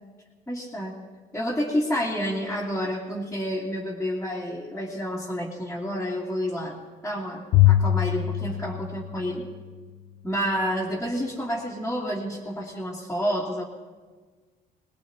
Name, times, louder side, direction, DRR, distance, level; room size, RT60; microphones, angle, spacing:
voice 1, 0.5-0.9 1.3-6.8 7.0-9.4 10.2-13.6, equal, 10° left, -7 dB, 2.8 m, -29 dB
Bowed string instrument, 7.5-9.9, left 13 dB, 70° left, 0.6 m, -23 dB
22.5 x 20.0 x 2.9 m, 1.4 s
cardioid pair, 110°, 17 cm